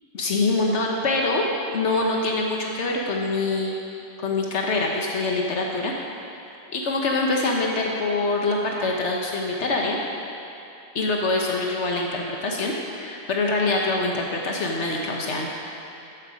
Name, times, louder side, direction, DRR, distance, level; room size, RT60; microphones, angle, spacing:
voice 1, 0.1-1.4 1.7-3.8 4.2-5.9 6.7-10.0 10.9-15.5, left 2 dB, 75° left, -1 dB, 1.3 m, -24 dB
13.5 x 7.7 x 5.1 m, 2.8 s
omnidirectional pair, 1.2 m